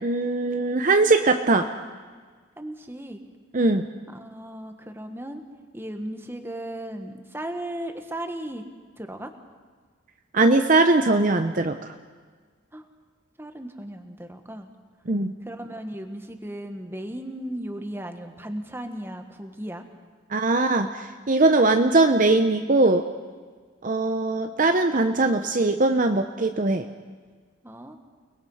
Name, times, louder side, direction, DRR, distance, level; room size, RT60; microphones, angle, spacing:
voice 1, 0.0-1.7 3.5-3.8 10.3-11.9 15.1-15.3 20.3-23.0 23.8-26.9, right 2 dB, 40° right, 7 dB, 0.8 m, -21 dB
voice 2, 2.6-3.2 4.1-5.4 5.7-8.6 9.0-9.3 12.7-12.8 13.4-14.7 15.4-19.8 27.6-28.0, right 1 dB, 10° right, 6 dB, 1.5 m, -36 dB
29.5 x 20.0 x 5.7 m, 1.5 s
head